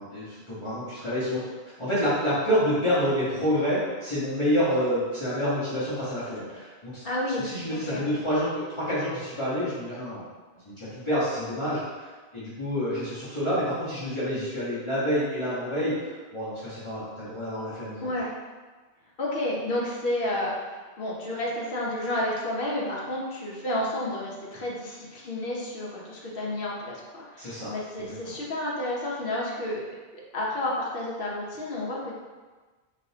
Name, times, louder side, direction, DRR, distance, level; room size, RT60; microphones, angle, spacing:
voice 1, 0.0-7.0 7.4-10.2 10.6-18.1 27.4-27.7 28.0-28.3, equal, 30° left, -13 dB, 1.3 m, -28 dB
voice 2, 7.0-8.2 18.0-18.3 19.2-20.5 21.0-29.8 30.3-32.1, left 1 dB, 60° left, -4 dB, 1.0 m, -31 dB
3.9 x 3.4 x 2.8 m, 1.3 s
omnidirectional pair, 1.1 m